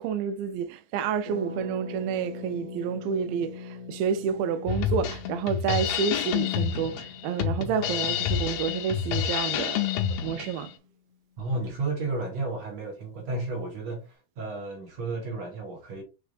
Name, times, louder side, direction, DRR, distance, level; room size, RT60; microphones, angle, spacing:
voice 1, 0.0-10.7, right 7 dB, 90° right, 2.5 m, -29 dB
Harp, 1.2-10.9 11.1-11.2 11.4-11.7, left 3 dB, 40° right, 2.5 m, -43 dB
Drum kit, 4.7-10.6, left 9 dB, 85° left, 2.5 m, -28 dB
voice 2, 11.4-16.0, right 3 dB, 60° right, 2.2 m, -32 dB
6.2 x 3.3 x 2.5 m
omnidirectional pair, 4.1 m